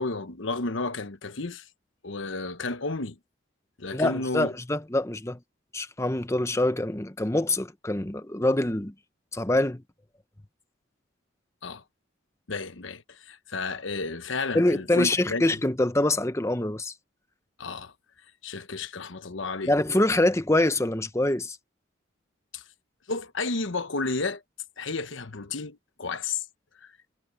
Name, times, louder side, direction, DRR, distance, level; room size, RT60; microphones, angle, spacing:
voice 1, 0.0-1.7 2.0-3.2 3.8-4.5 11.6-11.8 12.5-15.5 17.6-17.9 18.4-19.7 22.5-22.6 23.1-24.4 24.8-26.5 26.8-26.9, left 3 dB, 70° left, 1.1 m, -32 dB
voice 2, 3.9-5.4 5.7-8.9 9.3-9.8 14.5-16.9 19.7-21.6, left 1 dB, 15° left, 0.8 m, -25 dB
head